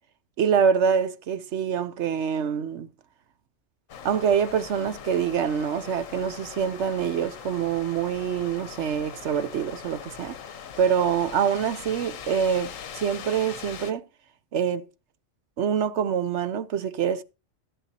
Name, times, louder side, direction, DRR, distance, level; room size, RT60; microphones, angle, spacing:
voice 1, 0.4-2.9 4.0-10.4 10.8-14.0 14.5-14.8 15.6-17.2, right 7 dB, 65° right, 0.9 m, -25 dB
sound 1, 3.9-13.9, left 8 dB, 80° left, 1.3 m, -41 dB
13.0 x 11.0 x 2.8 m
omnidirectional pair, 1.3 m